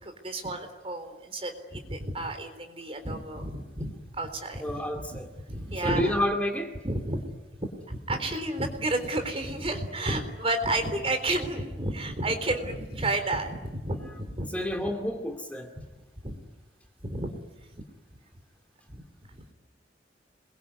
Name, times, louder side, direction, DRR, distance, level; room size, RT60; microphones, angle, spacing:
voice 1, 0.0-4.8 5.1-6.2 6.8-14.5 16.2-16.4 17.0-17.8 18.9-19.0 19.3-19.5, right 1 dB, 35° right, 6 dB, 3.8 m, -31 dB
voice 2, 4.6-5.3 5.8-6.7 14.5-15.7, left 1 dB, 10° left, 4 dB, 2.5 m, -29 dB
27.0 x 22.5 x 9.6 m, 1.2 s
head